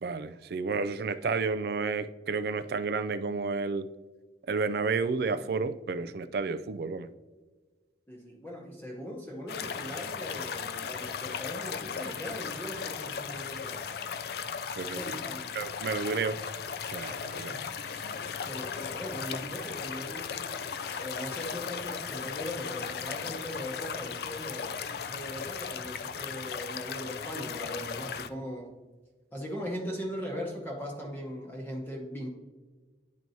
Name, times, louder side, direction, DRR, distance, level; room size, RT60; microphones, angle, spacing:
voice 1, 0.0-3.9 4.5-7.1 14.8-15.0 15.6-16.4 16.9-17.5, right 4 dB, 55° right, 13 dB, 0.3 m, -31 dB
voice 2, 8.1-13.9 14.9-15.5 17.3-17.7 18.2-20.4 21.0-28.7 29.3-32.3, equal, 10° left, -2 dB, 0.9 m, -39 dB
sound 1, 9.5-28.3, left 6 dB, 55° left, 0.3 m, -37 dB
10.5 x 4.5 x 2.7 m, 1.3 s
head